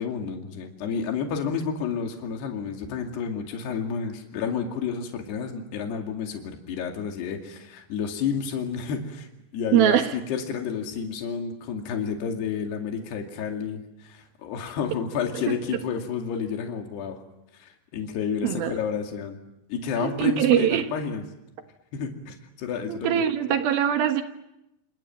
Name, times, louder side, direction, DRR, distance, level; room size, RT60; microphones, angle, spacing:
voice 1, 0.0-9.3 9.5-17.2 17.5-19.4 19.7-21.2 21.9-23.2, left 6 dB, 75° left, 3 dB, 4.4 m, -30 dB
voice 2, 9.7-10.2 18.4-18.8 20.0-20.9 22.9-24.2, right 10 dB, 70° right, 7 dB, 3.0 m, -22 dB
28.0 x 28.0 x 7.5 m, 0.88 s
omnidirectional pair, 4.8 m